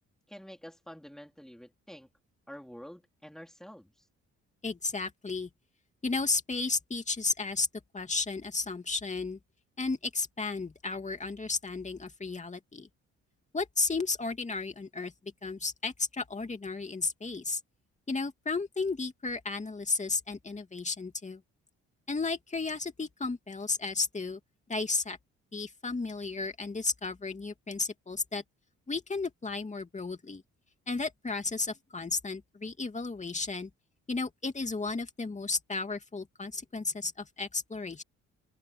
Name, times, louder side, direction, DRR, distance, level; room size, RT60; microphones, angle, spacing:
voice 1, 0.3-2.1 2.5-3.9, equal, ahead, 4.3 m, -48 dB
voice 2, 4.6-5.5 6.0-7.7 7.9-9.4 9.8-12.9 13.5-17.6 18.1-21.4 22.1-24.4 24.7-25.2 25.5-28.4 28.9-30.4 30.9-33.7 34.1-38.0, left 3 dB, 25° left, 2.6 m, -33 dB
open air
cardioid pair, 90°, 30 cm